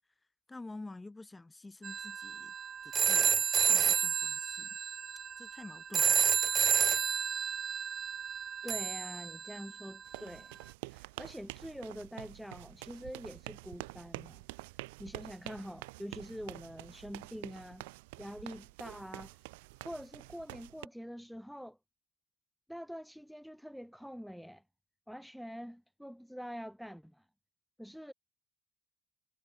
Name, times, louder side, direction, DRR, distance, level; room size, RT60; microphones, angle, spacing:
voice 1, 0.5-2.5 3.0-3.4 3.7-4.8 5.4-6.2, left 2 dB, 15° left, 7.4 m, -48 dB
sound 1, 1.8-9.9, right 7 dB, 45° right, 0.4 m, -30 dB
voice 2, 8.6-14.4 14.8-17.9 18.2-19.5 19.8-21.8 22.7-24.6 25.1-27.3 27.8-28.1, equal, ahead, 4.0 m, -45 dB
sound 2, 10.1-20.9, right 24 dB, 90° right, 1.9 m, -48 dB
supercardioid pair, 75°, 0 cm